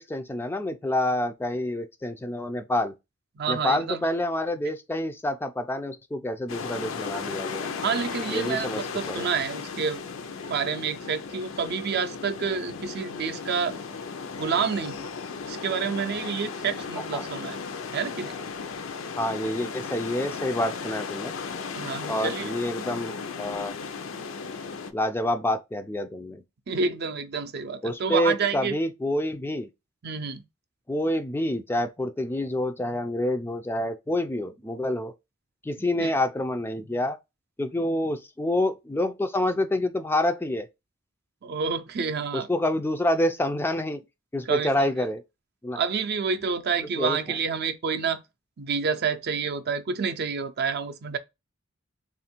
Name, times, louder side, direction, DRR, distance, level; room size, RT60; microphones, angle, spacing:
voice 1, 0.0-2.9 3.5-7.7 8.3-9.3 17.1-17.3 19.2-21.3 22.1-23.8 24.9-26.4 27.8-29.7 30.9-35.1 35.6-37.2 37.6-40.7 42.3-44.0 44.3-45.2 45.6-45.8 47.0-47.2, left 1 dB, 10° left, 0.3 m, -27 dB
voice 2, 3.4-4.1 7.8-10.0 10.5-13.7 14.4-14.9 15.4-17.6 17.9-18.4 21.7-22.5 26.7-28.8 30.0-30.4 36.0-36.1 41.4-42.5 44.5-44.7 45.8-48.2 48.6-51.2, right 5 dB, 55° right, 0.5 m, -28 dB
sound 1, 6.5-24.9, left 5 dB, 75° left, 0.5 m, -35 dB
3.5 x 2.4 x 4.3 m
head